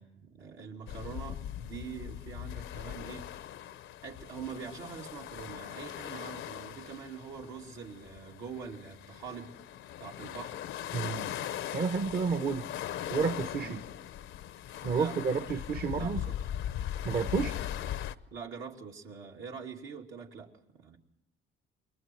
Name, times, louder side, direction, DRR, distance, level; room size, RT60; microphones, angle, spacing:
voice 1, 0.0-3.3 4.0-9.5 10.0-10.6 13.6-13.8 14.9-15.2 15.9-16.4 18.3-21.0, right 6 dB, 80° right, 0 dB, 2.9 m, -44 dB
sound 1, 0.9-18.1, left 11 dB, 80° left, 0.7 m, -40 dB
voice 2, 10.9-11.3 11.7-12.6 13.1-13.8 14.8-16.2 17.0-17.6, right 5 dB, 50° right, 8 dB, 1.1 m, -30 dB
29.0 x 22.0 x 4.6 m, 0.80 s
cardioid pair, 90°, 20 cm